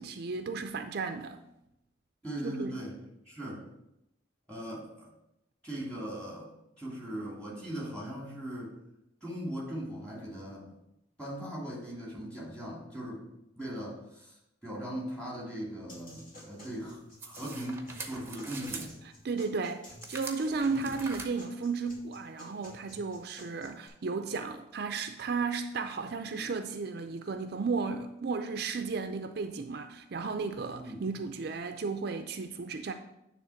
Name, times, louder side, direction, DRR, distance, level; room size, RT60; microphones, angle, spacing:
voice 1, 0.0-1.4 2.4-2.8 19.2-32.9, right 4 dB, 55° right, 0.4 m, -34 dB
voice 2, 2.2-3.0 3.3-3.7 4.5-5.1 5.6-6.5 6.8-8.8 9.2-10.8 11.2-13.3 13.6-18.9 20.7-20.9 30.7-31.0, right 1 dB, 5° left, 2.6 m, -39 dB
sound 1, 15.9-23.9, left 1 dB, 50° left, 2.6 m, -52 dB
sound 2, 17.2-18.9 20.0-21.3, right 3 dB, 15° right, 0.8 m, -43 dB
9.6 x 3.5 x 5.7 m
head